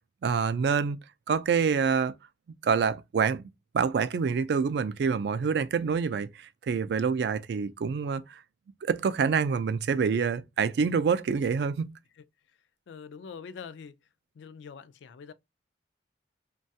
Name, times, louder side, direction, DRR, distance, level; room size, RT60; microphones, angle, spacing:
voice 1, 0.2-1.0 1.3-2.1 2.6-6.3 6.7-8.4 8.8-11.9, right 6 dB, 60° right, 0.3 m, -26 dB
voice 2, 12.9-13.9 14.4-15.3, left 6 dB, 75° left, 0.3 m, -44 dB
3.1 x 2.2 x 2.6 m
head